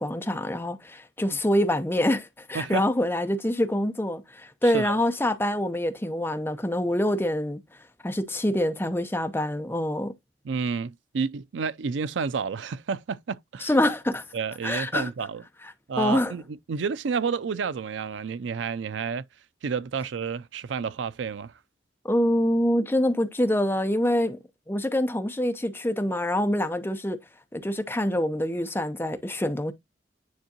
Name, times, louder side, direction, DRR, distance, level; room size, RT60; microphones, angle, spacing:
voice 1, 0.0-7.6 8.0-10.1 13.6-14.2 14.6-15.1 16.0-16.3 22.0-24.4 24.7-27.2 27.5-29.7, left 1 dB, 10° left, 0.7 m, -25 dB
voice 2, 4.6-5.0 10.4-13.7 14.3-15.4 15.9-16.4 16.7-19.2 19.6-21.5, right 5 dB, 80° right, 0.4 m, -30 dB
9.5 x 3.6 x 2.9 m
head